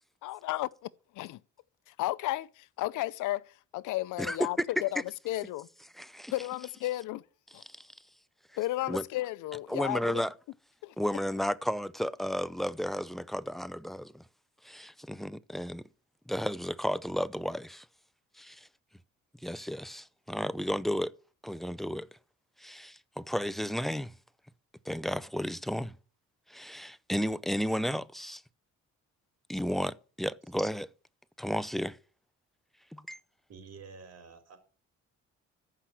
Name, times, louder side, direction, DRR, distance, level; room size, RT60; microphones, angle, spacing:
voice 1, 0.2-0.7 1.1-1.4 1.9-5.7 6.3-7.2 7.5-7.6 8.6-10.2 10.8-10.9, left 16 dB, 85° left, 0.6 m, -33 dB
voice 2, 4.2-4.5 6.0-6.3 7.7-7.9 8.9-9.0 9.7-10.3 11.0-14.2 14.6-15.9 16.3-17.9 18.4-18.7 19.4-21.1 21.4-22.1 22.6-24.1 24.8-25.9 26.5-28.4 29.5-30.9 31.4-32.0 32.9-33.2, equal, ahead, 0.6 m, -33 dB
voice 3, 33.5-34.6, right 5 dB, 55° right, 4.2 m, -49 dB
14.5 x 5.9 x 7.8 m
cardioid pair, 90°, 30 cm